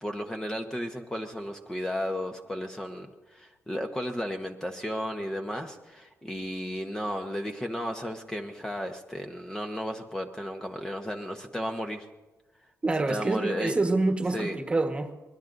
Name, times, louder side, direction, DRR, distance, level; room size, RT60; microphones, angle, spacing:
voice 1, 0.0-12.0 13.1-13.8 14.3-14.6, equal, 10° left, 3 dB, 1.0 m, -34 dB
voice 2, 12.8-15.1, right 2 dB, 20° right, 5 dB, 1.4 m, -26 dB
24.0 x 20.5 x 2.6 m, 1.2 s
cardioid pair, 120°, 6 cm